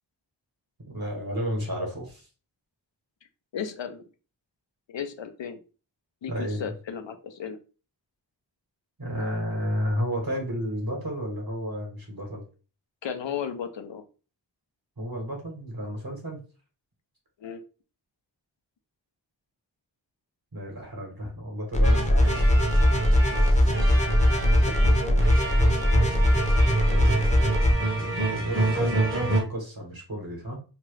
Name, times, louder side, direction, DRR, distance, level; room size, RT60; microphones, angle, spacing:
voice 1, 0.9-2.3 6.3-6.7 9.0-12.4 15.0-16.4 20.5-22.5 26.9-27.7 27.9-30.6, equal, 55° right, 0 dB, 1.4 m, -32 dB
voice 2, 3.5-4.0 4.9-5.6 6.2-7.6 13.0-14.1 17.4-17.6 24.3-24.9, left 7 dB, 80° left, 8 dB, 0.6 m, -35 dB
sound 1, 21.7-27.7, left 1 dB, 15° left, 0.7 m, -21 dB
sound 2, 21.8-29.4, right 2 dB, 30° right, 0.9 m, -27 dB
2.9 x 2.3 x 3.2 m, 0.35 s
wide cardioid pair, 45°, 44 cm